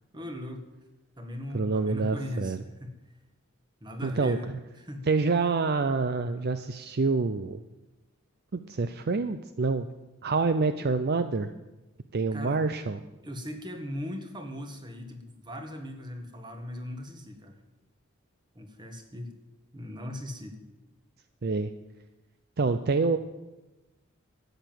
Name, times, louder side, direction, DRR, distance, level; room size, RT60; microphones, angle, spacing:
voice 1, 0.1-0.7 1.2-3.0 3.8-4.5 4.8-5.0 12.3-12.6 13.2-17.6 18.5-19.3 19.7-20.6, left 1 dB, 20° right, 5 dB, 1.7 m, -38 dB
voice 2, 1.5-2.6 4.0-4.4 5.0-7.6 8.5-9.9 10.2-11.5 12.1-13.0 21.4-21.7 22.6-23.2, right 4 dB, 50° right, 11 dB, 0.5 m, -27 dB
13.0 x 9.0 x 7.8 m, 1.0 s
head